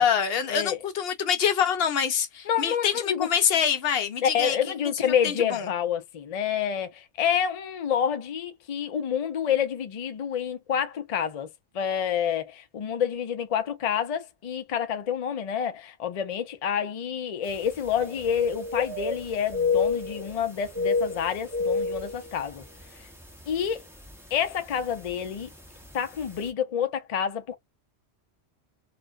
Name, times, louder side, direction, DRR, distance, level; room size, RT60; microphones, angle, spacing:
voice 1, 0.0-4.6 4.8-5.7, left 7 dB, 70° left, 0.8 m, -25 dB
voice 2, 2.5-3.3 4.2-11.5 11.7-22.6 23.5-23.8 24.3-25.5 25.9-27.6, left 8 dB, 50° left, 0.5 m, -28 dB
sound 1, 17.5-17.6 17.9-19.2 19.5-20.4 20.7-22.8 23.2-23.4 24.0-24.3 25.4-25.5 25.8-25.9, left 4 dB, 5° right, 0.5 m, -28 dB
2.4 x 2.2 x 2.3 m
omnidirectional pair, 1.1 m